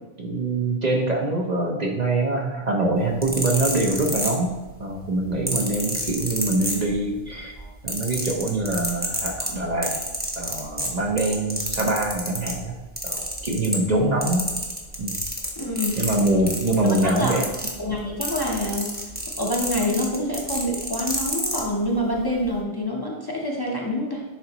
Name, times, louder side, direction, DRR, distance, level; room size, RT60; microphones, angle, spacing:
voice 1, 0.2-4.5 4.8-7.5 7.8-9.9 10.4-12.8 13.0-14.4 15.0-15.1 16.0-17.4, right 2 dB, 45° right, 0 dB, 0.9 m, -24 dB
sound 1, 3.0-4.8 5.5-7.2 7.5-12.6 13.0-14.0 14.2-21.6 22.4-22.5, equal, 10° right, 1.0 m, -29 dB
voice 2, 13.6-14.1 15.6-16.0 17.0-17.4 17.8-18.9 19.3-24.2, left 1 dB, 25° left, -3 dB, 0.8 m, -27 dB
10.5 x 3.9 x 3.0 m, 1.2 s
omnidirectional pair, 1.1 m